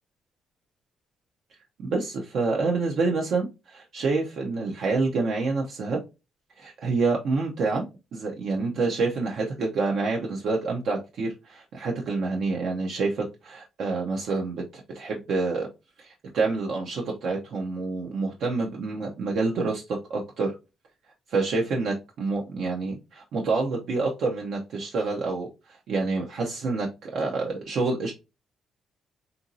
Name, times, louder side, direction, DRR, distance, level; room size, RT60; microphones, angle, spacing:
voice 1, 1.8-6.0 6.6-7.8 8.1-15.7 16.0-20.5 21.3-28.1, right 3 dB, 70° right, -1 dB, 0.5 m, -27 dB
2.9 x 2.5 x 2.5 m, 0.27 s
cardioid pair, 90°, 0 cm